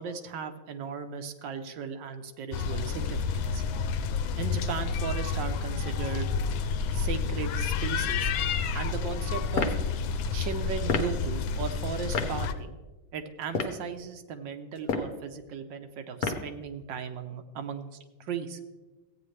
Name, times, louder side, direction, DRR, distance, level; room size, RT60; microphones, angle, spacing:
voice 1, 0.0-3.6 4.4-6.3 6.9-8.3 8.7-9.8 10.3-12.8 13.1-17.9 18.2-18.6, right 6 dB, 70° right, 8 dB, 1.3 m, -37 dB
sound 1, 2.5-12.5, left 5 dB, 80° left, 1.4 m, -30 dB
sound 2, 9.5-9.8 10.9-11.1 12.1-12.3 13.4-13.8 14.8-15.2 16.2-16.5, left 4 dB, 55° left, 1.1 m, -29 dB
15.0 x 9.0 x 3.2 m, 1.2 s
omnidirectional pair, 2.2 m